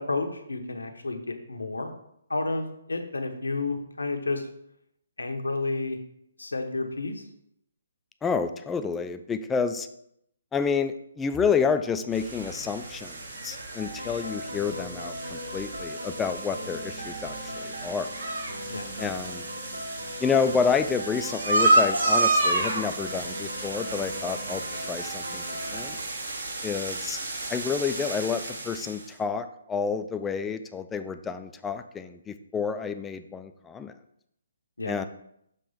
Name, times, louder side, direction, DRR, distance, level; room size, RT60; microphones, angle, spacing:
voice 1, 0.0-1.9 2.3-4.5 5.2-6.0 6.4-7.2 18.7-18.9 34.8-35.0, left 3 dB, 80° left, 5 dB, 0.9 m, -31 dB
voice 2, 8.2-9.9 10.5-18.1 19.0-19.5 20.2-25.4 25.7-26.0 26.6-27.2 27.5-33.9 34.9-35.1, left 6 dB, 10° left, 9 dB, 0.3 m, -29 dB
sound 1, 12.1-29.1, right 2 dB, 60° right, 1.2 m, -30 dB
sound 2, 13.8-26.0, equal, 85° right, 1.0 m, -39 dB
6.6 x 3.0 x 5.5 m, 0.75 s
figure-of-eight pair, 135°, 0 cm